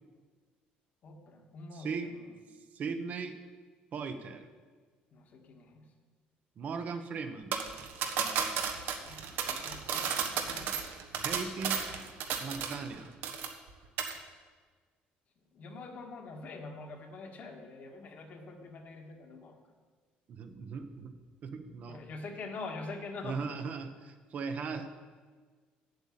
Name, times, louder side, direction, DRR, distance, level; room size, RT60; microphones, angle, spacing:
voice 1, 1.0-1.9 5.1-5.9 9.0-10.7 15.5-19.6 21.9-23.6, left 3 dB, 50° left, 3 dB, 1.6 m, -45 dB
voice 2, 1.7-2.1 2.7-3.4 3.9-4.5 6.6-7.5 11.1-11.9 12.4-13.1 20.3-22.0 23.2-24.9, right 5 dB, 50° right, 8 dB, 1.0 m, -38 dB
sound 1, 7.5-13.0 13.2-13.7 14.0-14.2, right 7 dB, 70° right, 1.2 m, -33 dB
8.0 x 7.2 x 8.6 m, 1.5 s
cardioid pair, 115°, 3 cm